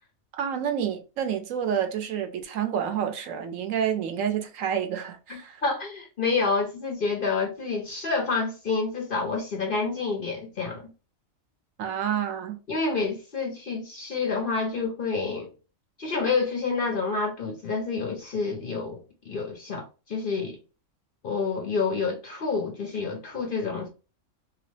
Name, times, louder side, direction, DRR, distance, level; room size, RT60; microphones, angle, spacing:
voice 1, 0.3-5.6 11.8-12.6, right 8 dB, 70° right, 1.0 m, -29 dB
voice 2, 5.3-10.9 12.7-15.5 16.0-20.6 21.2-23.9, left 4 dB, 50° left, 0.7 m, -28 dB
3.0 x 2.9 x 3.1 m
omnidirectional pair, 1.4 m